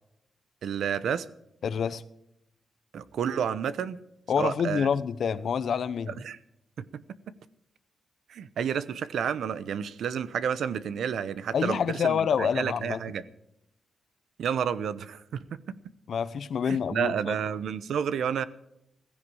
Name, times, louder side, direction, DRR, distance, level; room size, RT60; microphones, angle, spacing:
voice 1, 0.6-1.3 2.9-4.0 4.4-4.9 6.2-6.4 6.8-7.0 8.3-13.2 14.4-15.2 16.7-18.4, right 8 dB, 85° right, 0.9 m, -30 dB
voice 2, 1.6-2.0 4.3-6.1 11.5-13.0 16.1-17.4, left 7 dB, 65° left, 0.9 m, -27 dB
16.0 x 15.0 x 4.9 m
wide cardioid pair, 125°, 0 cm